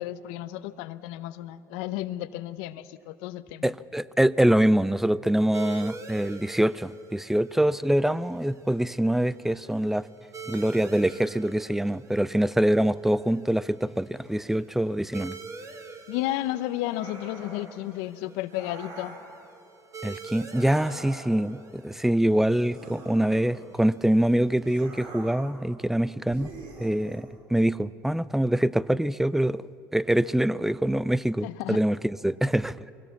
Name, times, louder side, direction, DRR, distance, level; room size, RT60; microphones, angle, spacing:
voice 1, 0.0-3.7 16.1-19.2 31.4-31.8, left 15 dB, 80° left, 14 dB, 0.7 m, -33 dB
voice 2, 3.6-10.0 10.5-15.3 20.0-26.5 26.8-29.6 29.9-32.9, right 1 dB, 5° right, 19 dB, 0.5 m, -24 dB
sound 1, 5.5-24.7, right 5 dB, 35° right, 1.7 m, -46 dB
sound 2, 16.8-17.8 18.5-19.3 20.4-21.5 22.7-23.9 24.6-25.6 26.3-27.3, right 2 dB, 70° right, 4.1 m, -44 dB
23.5 x 16.5 x 7.2 m, 2.7 s
supercardioid pair, 75°, 9 cm